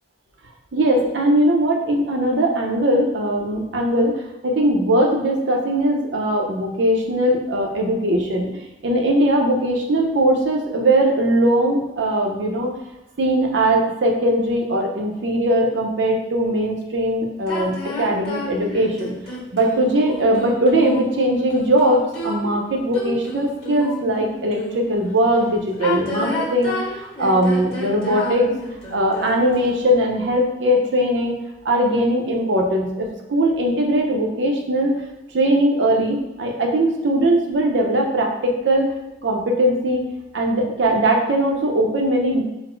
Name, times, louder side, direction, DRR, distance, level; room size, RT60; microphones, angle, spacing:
voice 1, 0.7-8.5 8.8-12.7 13.2-19.2 19.5-28.5 28.9-31.3 31.6-35.0 35.3-38.9 39.2-40.0 40.3-42.4, right 1 dB, 85° right, 1 dB, 0.7 m, -20 dB
sound 1, 17.5-25.0 25.7-29.7, left 1 dB, 30° left, 1.4 m, -30 dB
4.0 x 2.0 x 4.4 m, 0.98 s
head